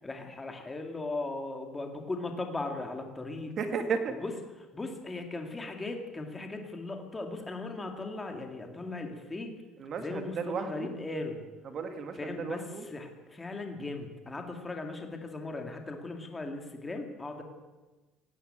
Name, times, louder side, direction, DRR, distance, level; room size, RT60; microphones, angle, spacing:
voice 1, 0.0-3.5 4.2-4.3 4.7-9.5 10.0-11.4 12.2-17.4, left 2 dB, 10° left, 4 dB, 2.3 m, -38 dB
voice 2, 3.6-4.2 9.8-10.9 11.6-12.8, right 5 dB, 35° right, 7 dB, 2.0 m, -34 dB
17.5 x 16.5 x 9.0 m, 1.2 s
cardioid pair, 175°, 0 cm